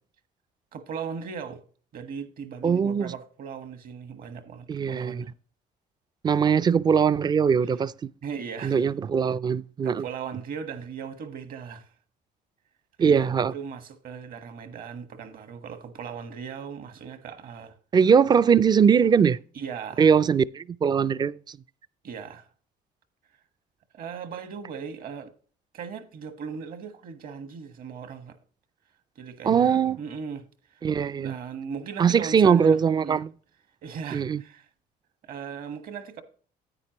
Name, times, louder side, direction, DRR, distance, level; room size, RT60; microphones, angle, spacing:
voice 1, 0.7-1.6 1.9-5.3 8.2-8.9 9.8-11.9 13.0-17.7 19.5-20.1 22.0-22.5 23.9-25.3 25.7-28.4 29.1-30.4 30.7-30.8 31.1-33.2 33.8-34.7 35.2-36.2, right 6 dB, 60° right, 1.4 m, -38 dB
voice 2, 2.6-3.1 4.7-5.2 6.2-7.9 8.6-10.0 13.0-13.5 17.9-19.4 20.0-21.6 29.4-30.0 30.8-31.3 32.0-33.3 34.1-34.4, right 6 dB, 25° right, 0.3 m, -21 dB
9.7 x 9.0 x 2.9 m
cardioid pair, 110°, 17 cm